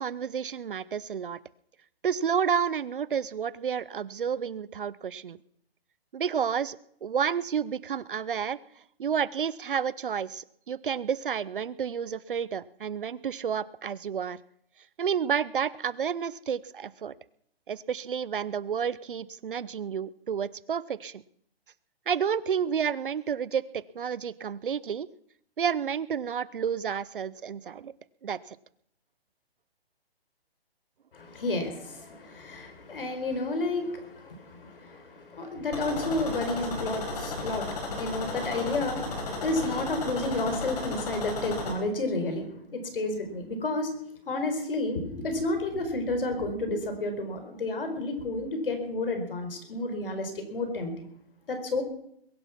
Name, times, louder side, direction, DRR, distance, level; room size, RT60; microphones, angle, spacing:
voice 1, 0.0-1.4 2.0-5.4 6.1-8.6 9.0-14.4 15.0-17.1 17.7-21.2 22.1-25.1 25.6-27.9 28.2-28.6, right 7 dB, 55° right, 19 dB, 0.6 m, -30 dB
voice 2, 31.1-43.9 44.3-51.1 51.5-51.8, left 2 dB, 60° left, 7 dB, 4.5 m, -31 dB
sound 1, 35.7-41.7, left 3 dB, 40° left, 5.1 m, -34 dB
22.0 x 10.5 x 5.9 m, 0.69 s
hypercardioid pair, 175°, 31 cm